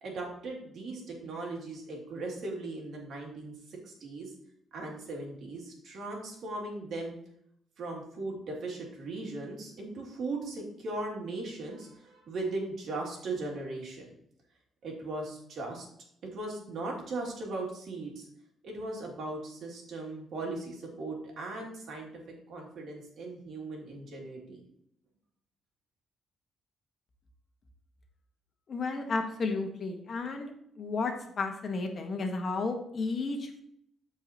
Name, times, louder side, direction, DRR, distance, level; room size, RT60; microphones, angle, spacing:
voice 1, 0.0-4.3 4.7-7.2 7.8-14.1 14.8-15.8 16.3-18.3 18.6-22.1 22.5-24.6, right 2 dB, 65° right, -1 dB, 2.6 m, -38 dB
voice 2, 28.7-30.5 30.8-33.6, left 3 dB, 50° left, 4 dB, 1.4 m, -32 dB
13.0 x 4.8 x 2.9 m, 0.72 s
cardioid pair, 90°, 0 cm